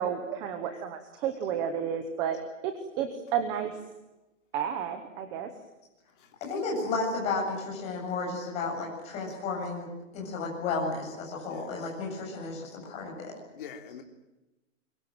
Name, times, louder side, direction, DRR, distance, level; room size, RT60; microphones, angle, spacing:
voice 1, 0.0-2.4 2.6-3.8 4.5-5.5, right 8 dB, 10° right, 8 dB, 0.8 m, -31 dB
voice 2, 6.5-9.9 10.1-13.3, left 3 dB, 15° left, -2 dB, 7.9 m, -33 dB
voice 3, 13.5-14.0, left 9 dB, 40° left, 4 dB, 3.3 m, -42 dB
25.0 x 23.0 x 9.1 m, 1.0 s
hypercardioid pair, 175°, 38 cm